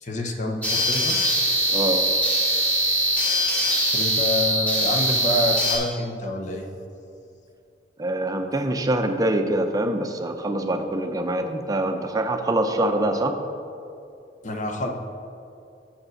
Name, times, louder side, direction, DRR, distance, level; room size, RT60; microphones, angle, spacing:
voice 1, 0.0-1.2 3.9-6.7 14.4-14.9, left 1 dB, 45° left, 3 dB, 0.8 m, -27 dB
sound 1, 0.6-5.8, equal, 10° left, 1.8 m, -22 dB
voice 2, 1.7-2.1 8.0-13.4, right 1 dB, 20° right, 5 dB, 0.6 m, -24 dB
7.4 x 5.0 x 6.4 m, 2.5 s
head